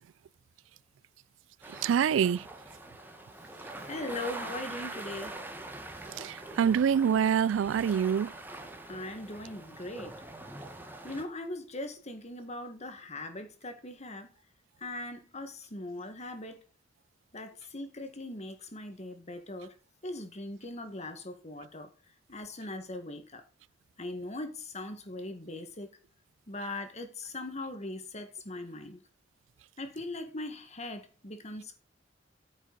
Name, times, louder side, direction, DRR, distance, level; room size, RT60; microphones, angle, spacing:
sound 1, 1.6-11.2, right 2 dB, 10° right, 1.4 m, -44 dB
voice 1, 1.8-2.4 6.2-8.3, right 8 dB, 85° right, 0.3 m, -26 dB
voice 2, 3.7-5.4 8.9-10.1 11.0-14.3 14.8-16.6 17.3-19.7 20.0-21.9 22.3-23.4 24.0-25.9 26.5-29.0 29.8-31.7, left 2 dB, 40° left, 1.9 m, -40 dB
9.5 x 6.2 x 4.1 m
head